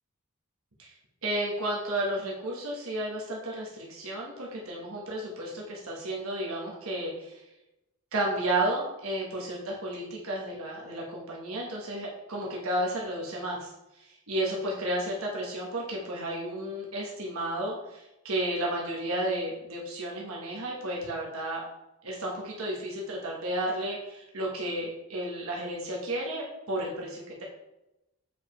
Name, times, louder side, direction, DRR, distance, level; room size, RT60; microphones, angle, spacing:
voice 1, 1.2-7.3 8.1-13.7 14.3-21.6 22.0-27.4, right 1 dB, 75° right, -3 dB, 1.3 m, -32 dB
7.3 x 4.8 x 3.2 m, 0.93 s
head